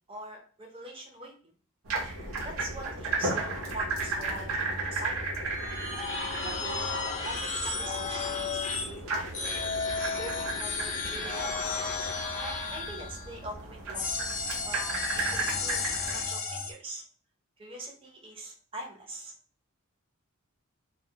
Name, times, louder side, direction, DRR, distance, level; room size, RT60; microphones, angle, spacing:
voice 1, 0.1-1.3 2.4-5.2 6.3-7.0 7.2-9.7 10.1-11.8 12.4-14.4 14.7-17.0 17.6-19.3, right 2 dB, 25° right, 0 dB, 0.5 m, -43 dB
sound 1, 1.9-16.3, right 3 dB, 75° right, 0.7 m, -35 dB
sound 2, 2.1-12.2, left 3 dB, 85° left, 0.5 m, -46 dB
sound 3, 5.5-8.9 9.3-13.3 13.9-16.7, left 4 dB, 35° left, 0.4 m, -33 dB
2.2 x 2.1 x 2.7 m, 0.41 s
head